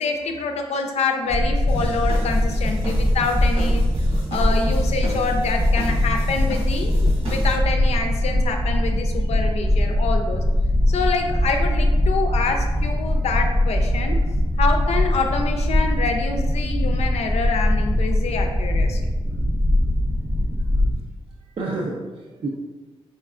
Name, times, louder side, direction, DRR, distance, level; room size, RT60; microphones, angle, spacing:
voice 1, 0.0-3.9 4.3-10.4 10.9-14.2 14.6-19.0, left 4 dB, 85° left, 4 dB, 0.4 m, -26 dB
sound 1, 1.3-20.9, left 1 dB, 10° right, 0.6 m, -21 dB
sound 2, 1.7-7.6, right 1 dB, 75° right, 1.5 m, -35 dB
voice 2, 21.4-22.5, right 2 dB, 55° right, -1 dB, 0.4 m, -31 dB
4.2 x 3.2 x 2.4 m, 1.2 s
cardioid pair, 90°, 11 cm